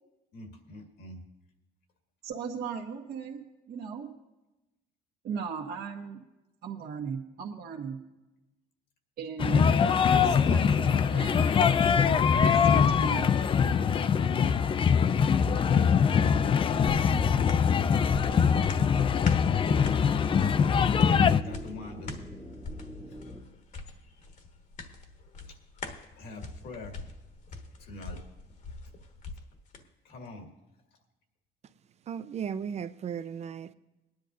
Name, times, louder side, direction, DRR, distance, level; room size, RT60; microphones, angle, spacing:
voice 1, 0.3-1.2 21.4-22.1 26.2-27.0 27.8-28.2 30.0-30.5, left 2 dB, 80° left, 2.1 m, -45 dB
voice 2, 2.2-4.1 5.2-6.3 6.6-8.0 9.2-9.7 10.1-13.9, right 6 dB, 65° right, 1.4 m, -38 dB
sound 1, 9.4-21.4, left 7 dB, 30° left, 0.4 m, -23 dB
sound 2, 13.3-23.4, equal, ahead, 1.1 m, -45 dB
sound 3, 18.6-29.8 30.2-30.3, left 3 dB, 45° left, 1.2 m, -44 dB
voice 3, 32.1-33.7, right 7 dB, 40° right, 0.5 m, -36 dB
21.5 x 10.5 x 2.7 m
cardioid pair, 110°, 17 cm